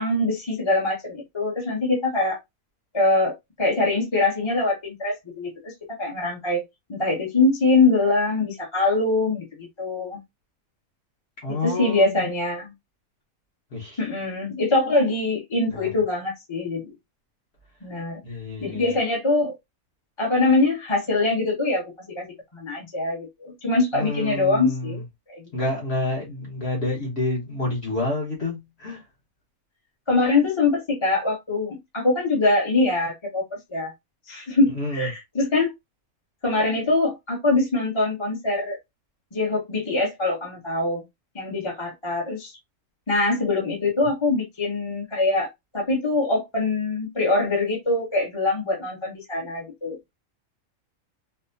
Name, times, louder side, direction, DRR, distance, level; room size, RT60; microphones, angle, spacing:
voice 1, 0.0-2.4 2.9-5.7 6.0-6.6 6.9-10.2 11.6-12.7 14.0-16.9 17.8-18.2 18.6-19.6 20.2-21.8 22.1-22.3 22.5-25.0 25.3-25.4 30.1-33.4 33.7-33.9 34.3-35.7 36.4-38.8 39.3-41.0 41.3-42.5 43.1-45.5 45.7-50.1, left 2 dB, 25° left, 0.8 m, -23 dB
voice 2, 11.4-12.3 13.7-14.0 14.9-15.0 15.7-15.9 18.2-18.9 23.9-25.0 25.5-29.0 34.7-35.1 44.0-44.1, left 2 dB, 50° left, 1.3 m, -29 dB
4.3 x 2.1 x 2.6 m
omnidirectional pair, 1.5 m